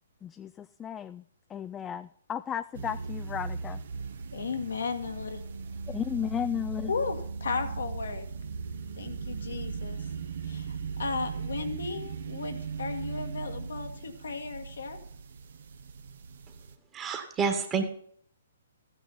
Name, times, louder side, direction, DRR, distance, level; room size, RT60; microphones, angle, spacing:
voice 1, 0.2-1.2 1.5-3.8 5.9-6.9, left 9 dB, 15° left, 12 dB, 0.3 m, -34 dB
sound 1, 2.7-16.7, right 5 dB, 65° right, 1.1 m, -38 dB
voice 2, 4.3-5.4 6.9-8.3 9.0-10.0 10.4-15.0, left 4 dB, 75° left, 5 dB, 1.6 m, -35 dB
voice 3, 16.9-17.8, right 6 dB, 20° right, 7 dB, 1.6 m, -28 dB
14.0 x 9.2 x 4.3 m, 0.62 s
hypercardioid pair, 130°, 0 cm